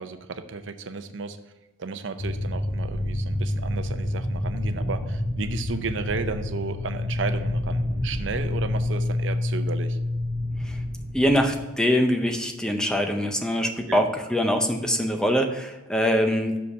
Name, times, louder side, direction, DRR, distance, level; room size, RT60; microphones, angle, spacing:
voice 1, 0.0-1.4 1.8-10.0 13.6-14.0, right 4 dB, 75° right, 9 dB, 0.6 m, -33 dB
sound 1, 2.2-11.6, left 1 dB, 70° left, 1.8 m, -28 dB
voice 2, 11.1-16.6, equal, 5° left, 4 dB, 0.6 m, -23 dB
6.6 x 5.5 x 5.5 m, 1.1 s
head